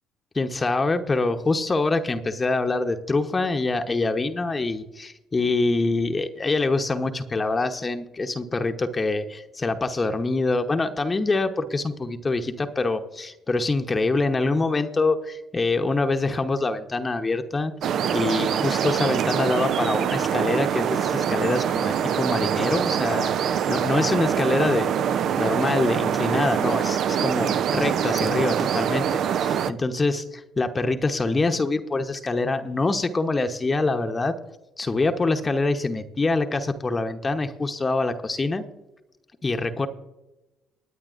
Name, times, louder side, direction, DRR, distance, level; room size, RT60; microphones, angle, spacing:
voice 1, 0.3-17.7 18.1-24.9 25.4-29.1 29.4-34.3 34.8-38.6 39.4-39.9, left 3 dB, 25° left, 7 dB, 0.9 m, -25 dB
sound 1, 17.8-29.7, right 8 dB, 55° right, 0.5 m, -24 dB
20.5 x 9.2 x 2.5 m, 0.98 s
figure-of-eight pair, 50°, 0 cm